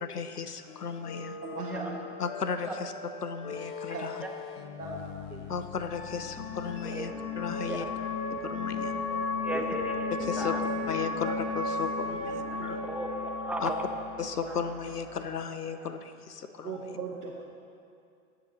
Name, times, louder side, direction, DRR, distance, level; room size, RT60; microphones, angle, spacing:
voice 1, 0.0-1.4 2.2-2.9 3.2-4.1 5.5-7.9 8.4-9.0 10.1-10.6 10.9-12.8 13.6-13.7 14.2-17.0, left 6 dB, 85° left, 10 dB, 0.8 m, -35 dB
sound 1, 0.7-7.1, left 5 dB, 40° left, 0.9 m, -42 dB
voice 2, 1.4-1.9 3.9-4.0 4.8-5.0 5.3-5.5 9.4-9.6 12.5-12.7 16.6-17.4, right 4 dB, 80° right, -3 dB, 1.2 m, -38 dB
sound 2, 5.1-15.2, left 3 dB, 15° left, 1.9 m, -34 dB
voice 3, 9.1-9.9 10.4-10.6 12.2-14.0 14.5-14.6, right 2 dB, 5° right, 2 dB, 0.6 m, -37 dB
15.0 x 7.8 x 4.1 m, 2.4 s
figure-of-eight pair, 95°, 45 cm